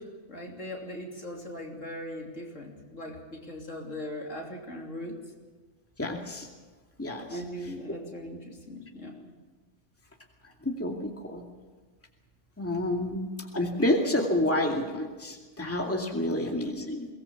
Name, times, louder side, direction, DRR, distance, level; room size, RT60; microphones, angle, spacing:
voice 1, 0.0-5.2 7.3-9.3 13.0-13.1 16.2-16.4, left 1 dB, 60° left, 0 dB, 3.4 m, -40 dB
voice 2, 6.0-6.5 7.0-7.3 10.6-11.4 12.6-17.1, left 1 dB, 10° left, 1 dB, 2.4 m, -29 dB
22.5 x 19.0 x 7.1 m, 1.3 s
omnidirectional pair, 1.5 m